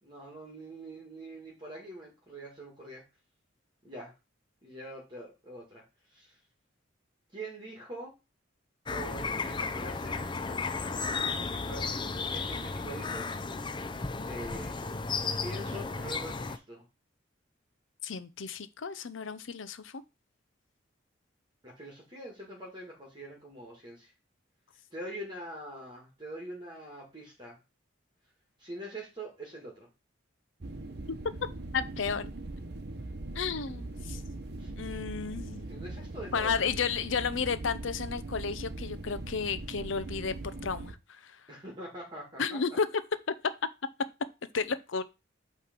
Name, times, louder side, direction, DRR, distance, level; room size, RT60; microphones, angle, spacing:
voice 1, 0.0-3.0 3.8-4.1 4.6-5.8 6.1-6.4 7.3-8.1 8.9-10.3 11.3-13.3 14.3-14.8 15.4-16.9 21.6-24.1 24.9-27.6 28.6-29.9 34.6-34.7 35.7-36.7 41.5-42.6, right 1 dB, 25° right, 1.8 m, -44 dB
sound 1, 8.9-16.6, left 4 dB, 25° left, 0.5 m, -34 dB
voice 2, 18.0-19.9 31.7-32.3 33.4-34.2 34.8-35.6 36.3-40.3 40.6-41.4 42.4-42.9 44.5-45.0, left 5 dB, 75° left, 0.6 m, -32 dB
sound 2, 30.6-40.9, right 2 dB, 55° right, 0.9 m, -40 dB
8.6 x 3.3 x 5.2 m
head